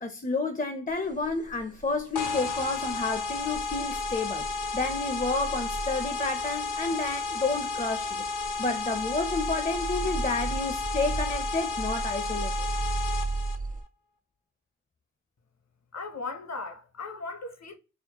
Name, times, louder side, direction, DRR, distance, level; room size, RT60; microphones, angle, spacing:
voice 1, 0.0-4.4 4.7-8.2 8.6-12.7, left 3 dB, 25° left, 0.5 m, -30 dB
sound 1, 0.9-6.8 7.2-7.6 8.0-8.1 8.4-8.6 8.9-13.8, right 3 dB, 25° right, 0.4 m, -36 dB
sound 2, 2.2-13.6, left 3 dB, 85° left, 0.5 m, -32 dB
voice 2, 15.9-17.7, left 3 dB, 60° left, 0.8 m, -37 dB
4.3 x 2.1 x 2.8 m
wide cardioid pair, 50°, 31 cm